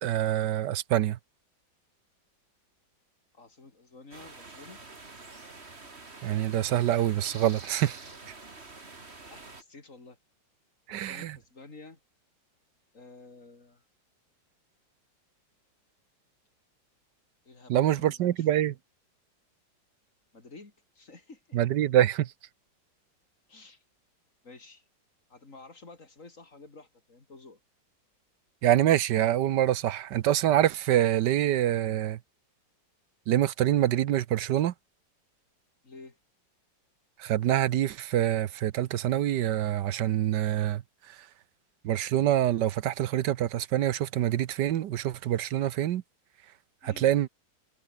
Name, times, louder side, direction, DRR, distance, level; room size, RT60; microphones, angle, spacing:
voice 1, 0.0-1.2 6.2-8.0 10.9-11.4 17.7-18.7 21.5-22.3 28.6-32.2 33.3-34.7 37.2-40.8 41.1-41.2 41.8-46.0 46.8-47.3, right 12 dB, 70° right, 1.4 m, -25 dB
voice 2, 3.3-4.8 9.3-10.2 10.9-12.0 12.9-13.8 17.4-18.5 20.3-21.6 23.5-23.8 24.4-24.8 25.3-27.6 35.8-36.2 46.8-47.1, left 3 dB, 40° left, 3.6 m, -51 dB
sound 1, 4.1-9.6, right 3 dB, 35° right, 3.0 m, -47 dB
omnidirectional pair, 2.0 m